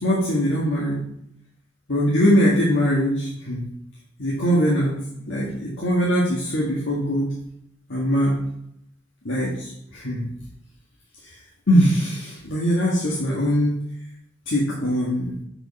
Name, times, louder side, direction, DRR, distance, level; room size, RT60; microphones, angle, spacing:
voice 1, 0.0-1.0 1.9-3.6 4.2-5.0 5.3-7.3 7.9-8.4 9.2-10.3 11.2-11.4 11.7-13.8 14.5-15.4, equal, 80° left, -5 dB, 1.6 m, -21 dB
6.5 x 4.9 x 5.3 m, 0.75 s
head